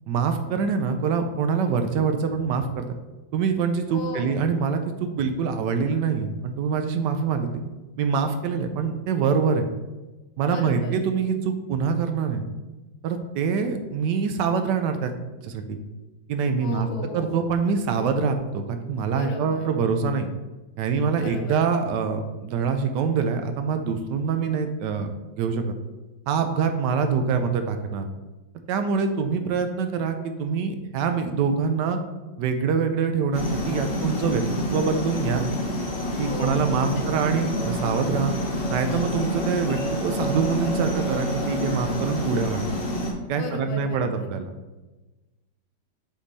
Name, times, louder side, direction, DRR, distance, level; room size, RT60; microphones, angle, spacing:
voice 1, 0.1-2.9 3.3-7.6 8.0-9.7 10.4-12.4 13.0-15.1 15.4-15.8 16.3-16.9 17.1-20.3 20.8-25.1 25.4-25.7 26.3-28.1 28.7-32.0 32.4-34.4 34.7-35.4 36.2-38.3 38.7-42.7 43.3-44.5, right 5 dB, 75° right, 7 dB, 1.1 m, -25 dB
voice 2, 3.9-4.4 10.5-11.0 16.6-17.4 19.1-19.7 21.1-21.6 36.3-37.3 43.3-44.3, left 3 dB, 90° left, 3 dB, 1.6 m, -36 dB
sound 1, 33.3-43.1, equal, 40° left, 0.9 m, -28 dB
6.1 x 3.9 x 4.0 m, 1.1 s
omnidirectional pair, 2.0 m